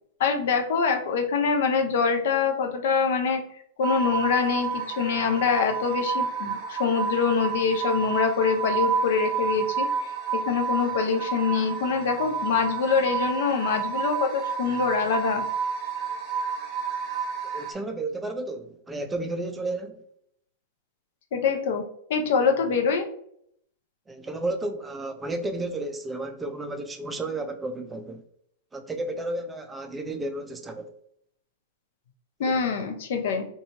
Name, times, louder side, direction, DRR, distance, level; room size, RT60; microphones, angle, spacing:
voice 1, 0.2-3.4 3.8-15.4 21.3-21.8 22.1-23.1 32.4-33.4, left 5 dB, 70° left, 0.5 m, -25 dB
sound 1, 3.8-17.7, right 6 dB, 35° right, 0.7 m, -30 dB
voice 2, 17.4-20.0 24.1-28.2 28.7-30.9 32.4-32.5, right 2 dB, 15° right, 0.4 m, -32 dB
2.7 x 2.3 x 2.8 m
hypercardioid pair, 115°, 0 cm